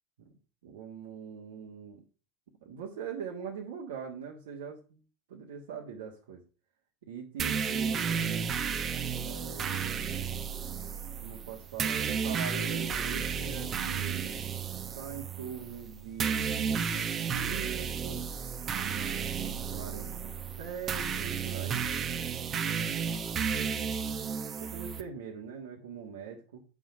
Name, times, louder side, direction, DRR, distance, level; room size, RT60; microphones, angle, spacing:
voice 1, 0.6-2.0 2.6-5.0 5.3-6.4 7.0-8.5 9.2-10.1 11.2-14.4 14.9-18.2 18.6-19.2 19.7-20.3 20.6-21.9 24.6-26.6, right 7 dB, 70° right, -1 dB, 1.6 m, -42 dB
sound 1, 7.4-25.0, right 7 dB, 35° right, 1.2 m, -33 dB
9.0 x 6.3 x 5.3 m, 0.35 s
hypercardioid pair, 80°, 0 cm